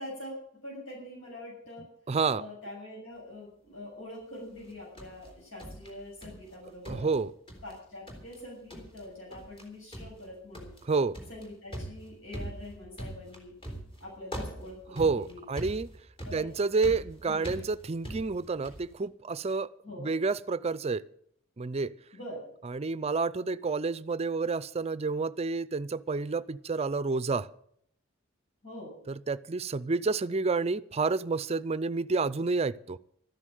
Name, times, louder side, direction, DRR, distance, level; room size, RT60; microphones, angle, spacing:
voice 1, 0.0-1.9 2.3-7.1 7.6-10.7 11.3-13.6 14.0-15.4 16.2-16.5 17.3-17.5 19.8-20.1 22.1-22.4 28.6-28.9, left 1 dB, 85° left, -2 dB, 7.1 m, -44 dB
voice 2, 2.1-2.4 6.9-7.3 10.8-11.2 14.9-15.9 16.3-19.7 20.0-21.0 21.6-21.9 22.6-27.5 29.1-33.0, right 4 dB, 30° right, 18 dB, 0.5 m, -29 dB
sound 1, 4.6-6.5 6.8-7.8 8.1-8.4 8.7-9.0 9.3-9.6 9.9-18.9, right 1 dB, 25° left, 3.6 m, -42 dB
13.5 x 9.9 x 7.6 m, 0.67 s
head